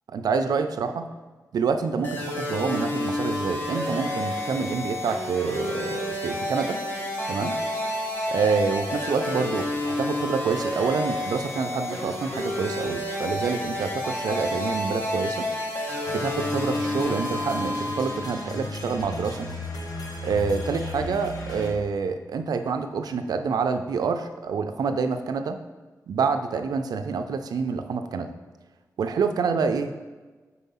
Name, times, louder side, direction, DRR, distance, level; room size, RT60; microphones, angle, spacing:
voice 1, 0.1-1.1 1.5-6.8 7.3-7.6 8.3-15.5 16.1-19.5 20.2-25.6 26.1-28.3 29.0-29.9, right 5 dB, 90° right, 7 dB, 0.4 m, -27 dB
sound 1, 2.0-18.5, left 1 dB, 30° left, 1.0 m, -30 dB
sound 2, 16.0-21.7, left 2 dB, 90° left, 0.9 m, -35 dB
4.6 x 4.3 x 5.5 m, 1.3 s
wide cardioid pair, 175°, 6 cm